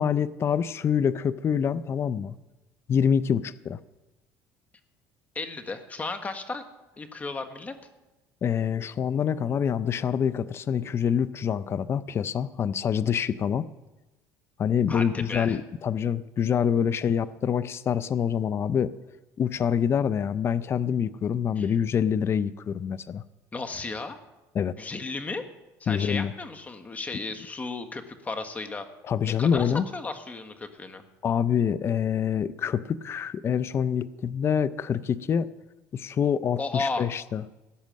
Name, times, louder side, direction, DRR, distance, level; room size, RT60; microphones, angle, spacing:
voice 1, 0.0-2.3 2.9-3.8 8.4-13.6 14.6-18.9 19.4-23.2 24.5-24.7 25.9-26.3 29.1-29.8 31.2-35.5 35.9-37.4, left 8 dB, 35° left, 16 dB, 0.5 m, -26 dB
voice 2, 5.3-6.6 7.0-7.7 14.9-15.6 21.5-21.8 23.5-24.2 24.8-25.4 25.8-28.9 29.2-31.0 36.6-37.1, left 3 dB, 20° left, 7 dB, 1.5 m, -34 dB
17.0 x 8.5 x 6.4 m, 1.0 s
cardioid pair, 115°, 7 cm